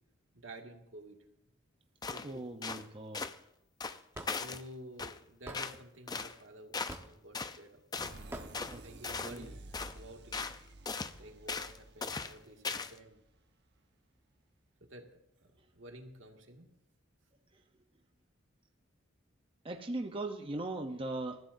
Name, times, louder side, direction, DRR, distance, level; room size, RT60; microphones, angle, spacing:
voice 1, 0.3-1.2 2.1-2.5 4.3-6.7 7.0-7.8 8.8-9.6 9.9-10.4 11.2-13.2 14.8-15.1 15.4-16.7, right 1 dB, 75° right, 2 dB, 2.1 m, -51 dB
sound 1, 2.0-2.3 2.6-2.8 3.1-3.4 3.8-4.6 5.0-5.2 5.5-5.8 6.1-6.3 6.7-7.0 7.3-7.6 7.9-8.2 8.5-8.8 9.0-9.4 9.7-10.0 10.3-10.6 10.8-11.1 11.5-11.8 12.0-12.3 12.6-13.0, left 4 dB, 20° left, 0.5 m, -38 dB
voice 2, 2.2-3.3 8.6-9.5 19.6-21.4, right 2 dB, 25° right, 4 dB, 0.7 m, -39 dB
Hammer / Wood, 4.1-4.3 5.5-5.6 6.9-7.2 8.3-8.5, right 1 dB, 10° right, 1.1 m, -43 dB
sound 2, 8.0-13.5, right 2 dB, 60° right, 1.1 m, -52 dB
27.5 x 14.0 x 2.6 m, 0.83 s
head